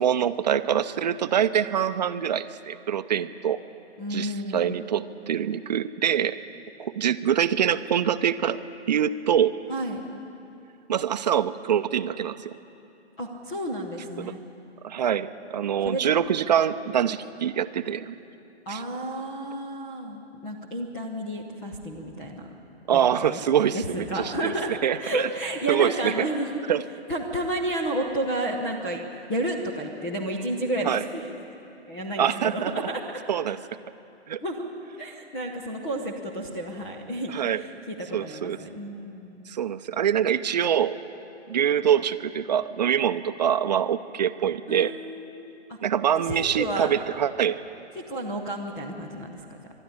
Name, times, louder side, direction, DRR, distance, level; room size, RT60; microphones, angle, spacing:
voice 1, 0.0-3.6 4.1-6.4 6.8-8.6 8.9-9.5 10.9-12.5 14.2-14.3 14.8-18.1 18.7-18.8 22.9-24.5 24.8-25.3 25.7-26.1 26.7-26.8 30.8-31.0 32.2-32.9 33.3-33.6 34.3-34.4 37.3-37.6 38.1-38.6 39.5-40.9 41.5-44.9 45.8-47.6, right 9 dB, 40° right, 12 dB, 0.6 m, -24 dB
voice 2, 4.0-4.8 9.7-10.1 13.2-14.4 15.8-16.1 18.7-22.5 23.2-23.4 23.7-24.7 25.0-26.5 27.1-29.0 29.3-31.3 31.9-33.2 34.4-34.7 35.0-39.5 44.7-45.8 46.3-46.9 47.9-49.6, right 1 dB, 5° left, 0 dB, 0.4 m, -31 dB
20.5 x 12.5 x 9.9 m, 2.8 s
figure-of-eight pair, 125°, 34 cm